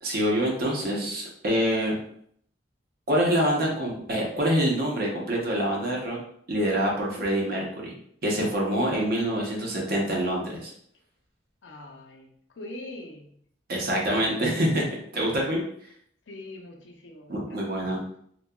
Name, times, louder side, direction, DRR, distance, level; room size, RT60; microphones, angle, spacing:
voice 1, 0.0-2.0 3.1-6.2 6.5-7.9 8.2-10.7 13.7-14.8 15.1-15.6 17.3-18.0, equal, 55° right, -2 dB, 0.7 m, -26 dB
voice 2, 11.6-13.3 16.3-17.8, left 1 dB, 80° left, 1 dB, 0.5 m, -43 dB
2.7 x 2.2 x 2.2 m, 0.66 s
head